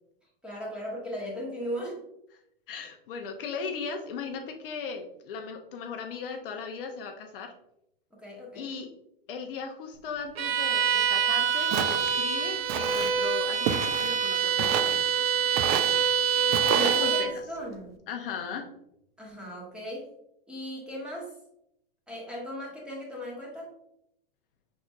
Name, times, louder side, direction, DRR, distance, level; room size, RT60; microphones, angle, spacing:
voice 1, 0.4-2.0 8.1-8.7 16.6-18.0 19.2-20.1 20.5-21.3 22.1-23.7, equal, 5° right, -4 dB, 1.6 m, -37 dB
voice 2, 2.7-7.5 8.5-8.9 9.3-15.0 16.8-17.4 18.1-18.7, left 5 dB, 70° left, 5 dB, 0.8 m, -37 dB
Bowed string instrument, 10.4-17.4, right 7 dB, 90° right, 0.6 m, -26 dB
Walk footsteps, 11.7-12.1 12.7-13.1 13.7-14.2 14.6-15.0 15.6-16.0 16.5-17.0, right 8 dB, 35° right, 0.4 m, -30 dB
6.1 x 3.8 x 2.3 m, 0.78 s
hypercardioid pair, 125°, 29 cm